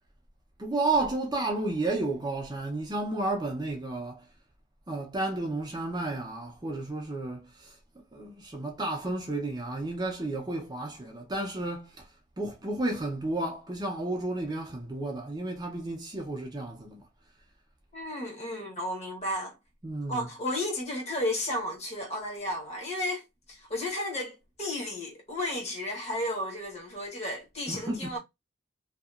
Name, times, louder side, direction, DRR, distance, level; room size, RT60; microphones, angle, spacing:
voice 1, 0.6-4.2 4.9-7.8 8.1-12.1 12.4-17.0 19.8-20.3 27.7-28.2, right 2 dB, 20° right, 0.5 m, -32 dB
voice 2, 17.9-19.6 20.1-28.2, left 1 dB, 35° left, 1.0 m, -33 dB
2.8 x 2.3 x 2.3 m
head